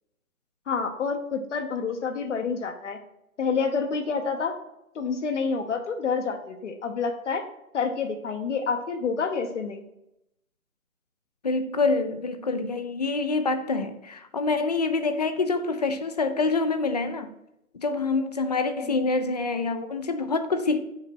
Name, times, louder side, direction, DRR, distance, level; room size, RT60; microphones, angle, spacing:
voice 1, 0.7-3.0 3.4-4.6 4.9-7.4 7.7-9.8 18.8-18.9, left 5 dB, 55° left, 1.0 m, -28 dB
voice 2, 11.4-17.3 17.7-20.8, left 3 dB, 30° left, 0.5 m, -26 dB
8.7 x 5.8 x 4.5 m
figure-of-eight pair, 145°, 43 cm